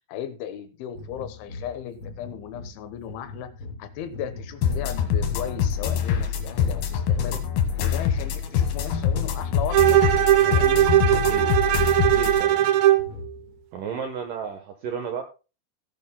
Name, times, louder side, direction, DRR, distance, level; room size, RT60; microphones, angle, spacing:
voice 1, 0.1-3.5 3.8-7.4 7.8-10.0 10.3-10.9, left 9 dB, 85° left, 10 dB, 3.5 m, -36 dB
sound 1, 0.9-13.6, left 3 dB, 50° left, 1.6 m, -42 dB
sound 2, 4.6-12.4, left 8 dB, 65° left, 3.0 m, -25 dB
Bowed string instrument, 9.7-13.1, right 13 dB, 90° right, 2.0 m, -19 dB
voice 2, 11.1-11.5 12.1-12.6 13.7-15.2, right 7 dB, 70° right, 4 dB, 2.1 m, -33 dB
16.5 x 11.0 x 2.2 m, 0.31 s
omnidirectional pair, 5.3 m